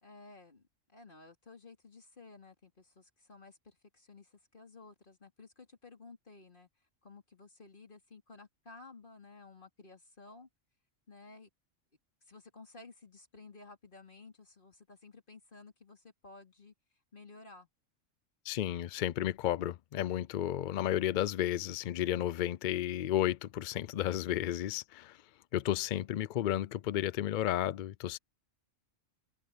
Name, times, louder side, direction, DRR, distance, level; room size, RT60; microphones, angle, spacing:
voice 1, 0.0-0.6 0.9-6.7 7.0-10.5 11.1-11.5 12.3-16.7 17.1-17.7, left 3 dB, 40° left, 3.5 m, -54 dB
voice 2, 18.5-25.2 25.5-28.2, left 12 dB, 75° left, 0.4 m, -32 dB
omnidirectional pair, 1.4 m